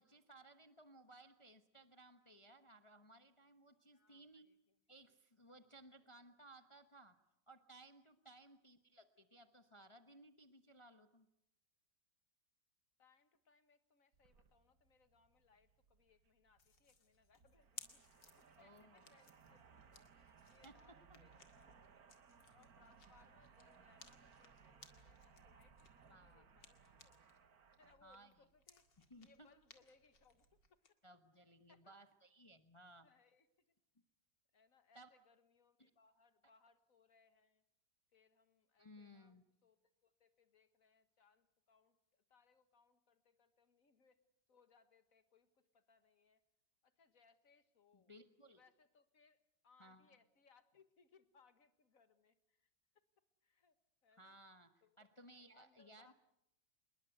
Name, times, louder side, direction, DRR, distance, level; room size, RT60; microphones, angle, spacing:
voice 1, 0.0-4.5 4.9-7.2 7.5-11.3 18.6-19.0 20.6-21.2 26.1-26.5 28.0-28.3 29.1-29.5 31.0-33.1 34.9-35.1 35.8-35.9 38.8-39.4 47.9-48.6 49.8-50.1 54.2-56.1, right 1 dB, 20° left, 8 dB, 1.0 m, -61 dB
voice 2, 3.9-4.8 6.0-6.4 13.0-18.1 18.4-22.1 22.5-27.2 27.7-28.9 29.2-31.0 31.7-32.0 33.0-33.8 34.5-37.6 38.1-44.2 44.5-46.4 46.8-48.1 48.5-49.4 49.6-52.7 53.4-53.8 54.0-54.4 54.8-56.1, left 5 dB, 50° left, 11 dB, 1.9 m, -72 dB
sound 1, 14.1-30.7, right 6 dB, 60° right, 1.9 m, -66 dB
sound 2, 16.6-27.4 27.7-30.9, left 6 dB, 90° left, 2.7 m, -62 dB
27.0 x 21.0 x 8.0 m, 0.79 s
omnidirectional pair, 1.9 m